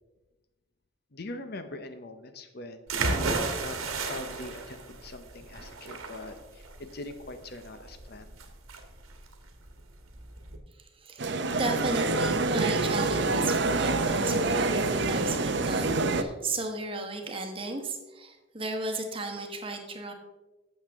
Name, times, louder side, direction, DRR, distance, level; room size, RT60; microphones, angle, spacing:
voice 1, 1.1-8.3, left 2 dB, 50° left, 8 dB, 0.7 m, -42 dB
sound 1, 2.9-10.6, right 3 dB, 90° right, 1.4 m, -33 dB
voice 2, 10.8-11.3 11.6-20.1, right 2 dB, 25° right, 3 dB, 1.1 m, -34 dB
sound 2, 11.2-16.2, right 3 dB, 55° right, 0.6 m, -26 dB
11.5 x 7.5 x 3.5 m, 1.1 s
head